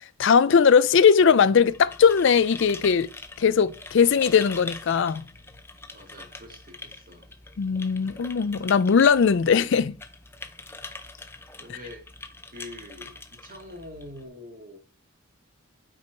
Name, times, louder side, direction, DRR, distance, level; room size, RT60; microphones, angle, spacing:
voice 1, 0.2-3.1 3.4-5.2 7.6-10.0 11.7-11.8, left 6 dB, 60° left, 0.4 m, -19 dB
sound 1, 1.6-14.3, left 3 dB, 10° left, 0.6 m, -43 dB
voice 2, 5.9-7.3 11.6-12.1 12.5-14.8, left 1 dB, 40° right, 1.7 m, -44 dB
8.7 x 4.7 x 4.5 m
head